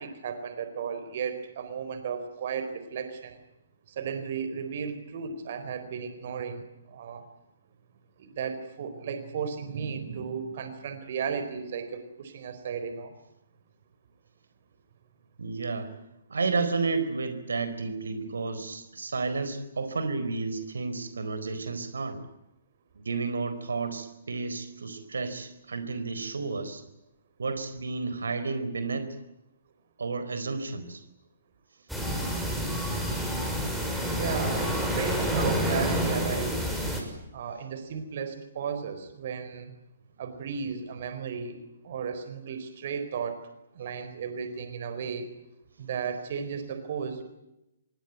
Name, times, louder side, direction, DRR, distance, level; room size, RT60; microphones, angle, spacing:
voice 1, 0.0-3.4 3.9-7.2 8.2-13.1 34.1-36.7 37.3-39.7 40.2-43.4 43.7-45.3 45.8-47.2, right 6 dB, 45° right, 10 dB, 4.3 m, -34 dB
voice 2, 15.4-15.9 16.3-22.2 23.0-26.8 27.4-29.1 30.0-31.0, right 4 dB, 65° right, 10 dB, 4.4 m, -31 dB
sound 1, 31.9-37.0, equal, ahead, 6.5 m, -28 dB
27.0 x 23.0 x 9.4 m, 0.89 s
figure-of-eight pair, 125°, 0 cm